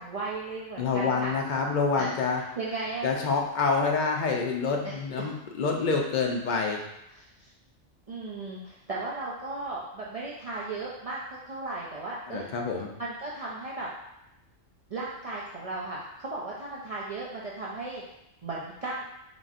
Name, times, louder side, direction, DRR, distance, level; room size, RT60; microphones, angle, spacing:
voice 1, 0.0-1.3 2.0-2.1 2.6-3.1 4.8-4.9 7.2-7.5 8.1-12.5 13.0-13.9 14.9-18.0 18.4-19.0, right 3 dB, 65° right, -6 dB, 0.3 m, -36 dB
voice 2, 0.8-2.4 3.0-6.8 12.3-12.9, left 4 dB, 60° left, 1 dB, 0.5 m, -27 dB
4.0 x 3.6 x 2.5 m, 0.87 s
omnidirectional pair, 1.4 m